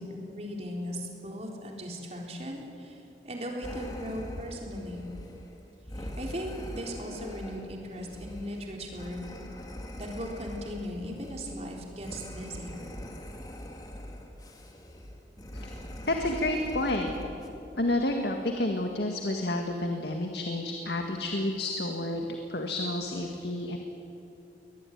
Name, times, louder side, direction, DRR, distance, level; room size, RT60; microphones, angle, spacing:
voice 1, 0.0-5.0 6.0-9.3 10.0-12.9, equal, 35° right, 0 dB, 4.0 m, -38 dB
sound 1, 3.6-17.5, equal, 20° left, 2.2 m, -42 dB
voice 2, 16.0-17.1 17.8-23.8, left 1 dB, 75° left, 3 dB, 1.9 m, -30 dB
23.0 x 19.0 x 9.4 m, 2.7 s
head